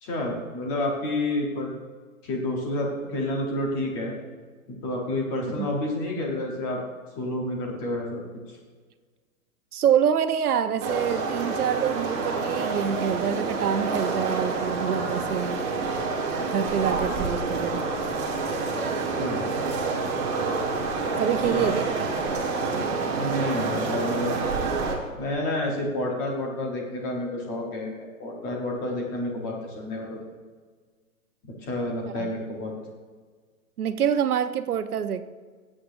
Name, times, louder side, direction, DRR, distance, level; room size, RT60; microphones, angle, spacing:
voice 1, 0.0-1.7 2.2-4.2 4.7-6.8 7.2-8.6 19.2-19.4 21.4-21.8 23.1-24.4 25.2-30.2 31.4-32.7, left 1 dB, 15° left, -1 dB, 1.0 m, -29 dB
voice 2, 9.7-15.6 16.5-17.8 21.2-22.0 32.1-32.3 33.8-35.2, right 8 dB, 90° right, 10 dB, 0.9 m, -26 dB
sound 1, 10.8-25.0, right 4 dB, 20° right, 1.4 m, -28 dB
21.0 x 8.6 x 2.6 m, 1.5 s
hypercardioid pair, 175°, 43 cm